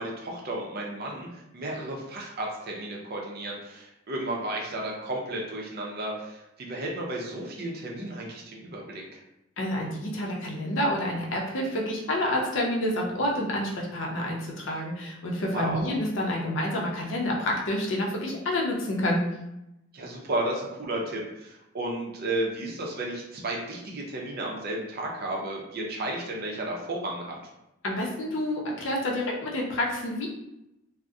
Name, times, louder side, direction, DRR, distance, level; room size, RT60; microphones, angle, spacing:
voice 1, 0.0-9.2 15.5-15.9 19.9-27.4, right 1 dB, 50° right, -1 dB, 0.5 m, -33 dB
voice 2, 9.6-19.2 27.8-30.3, left 1 dB, 70° left, -1 dB, 0.6 m, -28 dB
2.6 x 2.0 x 2.3 m, 0.88 s
head